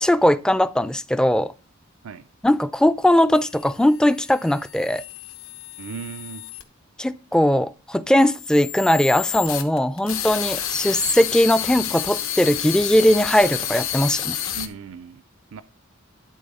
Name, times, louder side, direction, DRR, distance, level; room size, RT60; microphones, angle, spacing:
voice 1, 0.0-1.5 2.4-5.0 7.0-14.3, left 1 dB, 5° left, 0.3 m, -19 dB
sound 1, 3.3-6.6 8.2-14.7, left 10 dB, 75° left, 1.1 m, -30 dB
voice 2, 5.8-6.5 14.5-15.2 15.5-15.6, right 6 dB, 75° right, 0.4 m, -37 dB
12.0 x 4.1 x 5.2 m
head